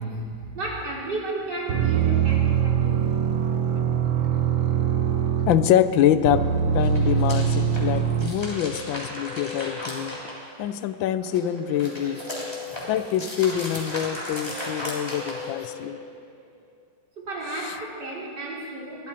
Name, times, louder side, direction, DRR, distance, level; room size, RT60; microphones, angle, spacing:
voice 1, 0.0-3.2 17.2-19.1, right 2 dB, 60° right, -4 dB, 3.7 m, -33 dB
sound 1, 1.7-5.8 6.2-8.3, right 8 dB, 85° right, 1.7 m, -23 dB
voice 2, 5.5-6.5 6.7-10.2 10.6-12.2 12.9-16.0 17.6-17.7, left 10 dB, 85° left, 13 dB, 1.4 m, -24 dB
sound 2, 6.7-10.8 11.2-15.8, equal, 15° left, 3.3 m, -36 dB
Guitar, 8.0-10.5 11.3-16.7, left 4 dB, 35° right, 5.3 m, -41 dB
22.0 x 13.5 x 4.3 m, 2.3 s
omnidirectional pair, 2.1 m